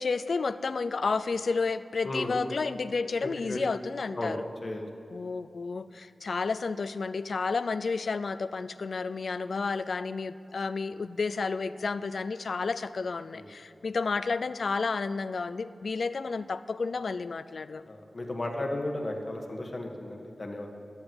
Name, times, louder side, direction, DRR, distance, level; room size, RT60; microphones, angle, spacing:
voice 1, 0.0-4.4 5.1-17.8, left 4 dB, 65° left, 13 dB, 0.4 m, -31 dB
voice 2, 2.0-2.4 3.2-3.6 4.1-4.8 13.3-13.5 17.9-20.7, left 1 dB, 40° left, 2 dB, 1.6 m, -34 dB
12.0 x 9.6 x 7.8 m, 2.7 s
wide cardioid pair, 110°, 0 cm